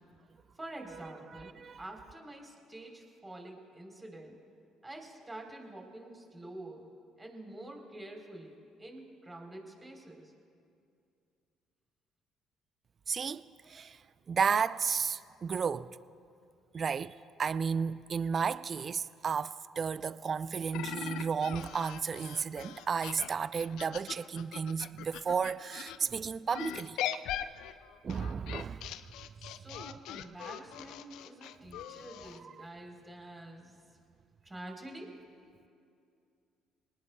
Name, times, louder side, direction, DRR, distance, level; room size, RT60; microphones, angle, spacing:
voice 1, 0.6-4.4 4.8-6.9 7.2-10.3 29.4-33.7 34.5-35.2, right 1 dB, 20° right, 3.8 m, -47 dB
voice 2, 1.3-1.8 13.1-14.0 14.3-15.9 16.7-27.0 28.0-28.9, right 6 dB, 45° right, 0.4 m, -33 dB
sound 1, 20.7-26.0 26.5-32.4, left 11 dB, 65° left, 0.5 m, -41 dB
28.0 x 19.5 x 2.3 m
hypercardioid pair, 50°, 0 cm